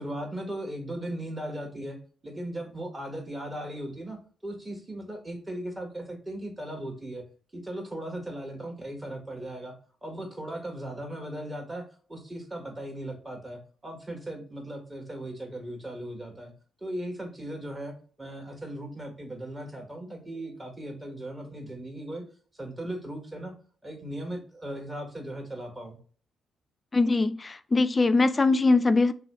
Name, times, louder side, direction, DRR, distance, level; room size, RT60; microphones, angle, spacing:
voice 1, 0.0-2.0 2.2-7.2 7.5-9.7 10.0-16.5 16.8-22.2 22.5-23.5 23.8-26.0, right 1 dB, 25° right, 1.2 m, -37 dB
voice 2, 26.9-29.1, left 3 dB, 35° left, 0.3 m, -22 dB
3.0 x 2.2 x 2.9 m
hypercardioid pair, 45°, 0 cm